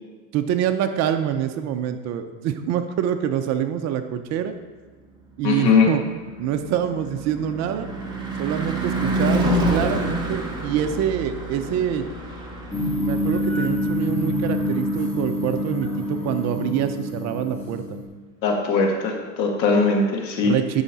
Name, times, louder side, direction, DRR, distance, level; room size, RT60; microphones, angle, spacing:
voice 1, 0.3-4.5 5.4-6.0 6.4-7.9 8.4-12.1 12.9-18.0 20.4-20.8, right 9 dB, 35° right, 8 dB, 0.6 m, -25 dB
Car passing by / Truck / Engine, 5.3-15.6, right 1 dB, 10° right, 1.5 m, -28 dB
voice 2, 5.4-5.9 18.4-20.5, left 4 dB, 85° left, 1 dB, 2.1 m, -20 dB
sound 1, 12.7-18.1, left 1 dB, 5° left, 2.8 m, -26 dB
11.0 x 5.7 x 4.1 m, 1.4 s
hypercardioid pair, 120°, 49 cm